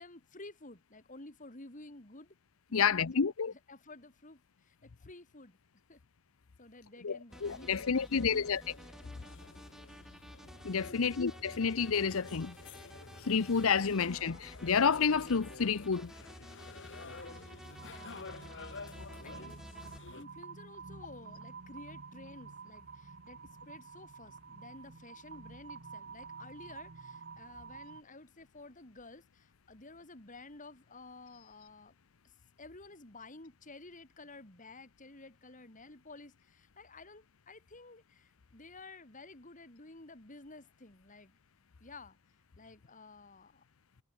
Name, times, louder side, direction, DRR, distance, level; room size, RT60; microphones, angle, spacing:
voice 1, 0.0-2.3 2.7-5.6 5.9-6.0 6.6-8.6 10.8-11.1 17.8-18.6 19.2-19.6 20.2-31.9 32.2-32.3 32.6-41.4 41.8-42.2 42.5-43.6, left 2 dB, 40° left, 3.2 m, -52 dB
voice 2, 2.7-3.5 7.0-8.6 10.6-12.5 13.3-16.1, left 6 dB, 75° left, 0.7 m, -29 dB
sound 1, 7.3-20.2, left 4 dB, 60° left, 1.7 m, -51 dB
sound 2, 7.3-20.0, equal, ahead, 5.4 m, -52 dB
sound 3, 17.1-28.0, right 5 dB, 50° right, 1.3 m, -50 dB
head